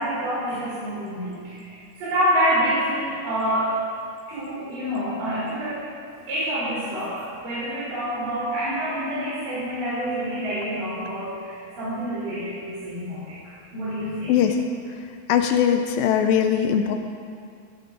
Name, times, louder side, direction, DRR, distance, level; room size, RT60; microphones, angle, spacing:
voice 1, 0.0-3.8 4.3-5.8 6.3-14.3, equal, 65° right, -11 dB, 5.9 m, -27 dB
voice 2, 15.3-16.9, left 9 dB, 85° left, 5 dB, 2.5 m, -20 dB
20.5 x 13.0 x 4.1 m, 2.3 s
omnidirectional pair, 4.1 m